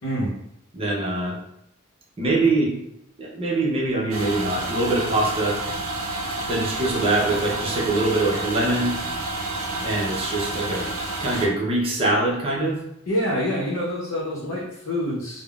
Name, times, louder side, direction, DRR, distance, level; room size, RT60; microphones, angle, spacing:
voice 1, 0.0-0.3 13.1-15.4, equal, 70° left, -6 dB, 0.7 m, -26 dB
voice 2, 0.7-1.4 2.2-2.7 3.2-5.6 6.5-8.9 9.8-10.9 11.2-12.8, right 2 dB, 30° right, -3 dB, 0.6 m, -23 dB
sound 1, 4.1-11.5, right 2 dB, 85° right, 0.5 m, -29 dB
3.5 x 2.0 x 2.3 m, 0.79 s
head